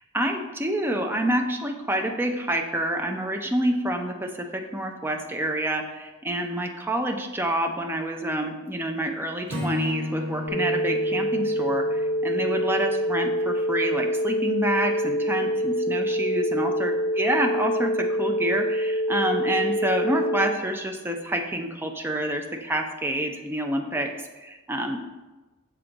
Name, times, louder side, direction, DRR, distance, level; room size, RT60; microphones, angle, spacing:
voice 1, 0.1-25.0, right 1 dB, 10° right, 3 dB, 0.5 m, -28 dB
Acoustic guitar / Strum, 9.5-12.8, left 1 dB, 75° right, 1.0 m, -33 dB
sound 1, 10.5-20.5, equal, 65° left, 1.6 m, -26 dB
6.7 x 3.7 x 3.9 m, 1.1 s
head